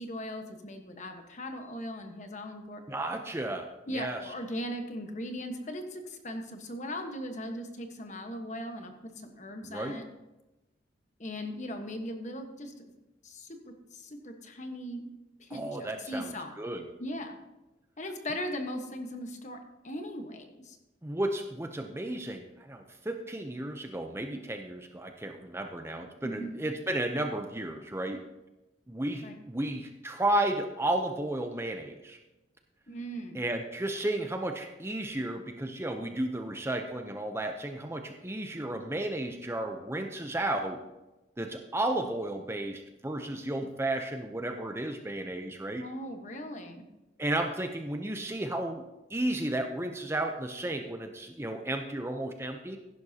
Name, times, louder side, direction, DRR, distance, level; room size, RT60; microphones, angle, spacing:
voice 1, 0.0-2.8 3.9-10.0 11.2-12.9 13.2-13.6 13.9-15.1 15.4-16.5 17.0-17.4 18.0-19.6 19.8-20.8 26.2-26.5 29.2-29.4 32.9-33.4 45.8-46.9, equal, 40° left, 5 dB, 1.3 m, -39 dB
voice 2, 2.9-4.2 9.6-10.0 15.5-16.3 16.6-16.8 21.0-28.2 28.9-32.2 33.3-40.8 41.4-45.9 47.2-48.8 49.1-52.8, right 1 dB, 15° right, 5 dB, 0.6 m, -33 dB
15.5 x 11.0 x 2.8 m, 1.0 s
head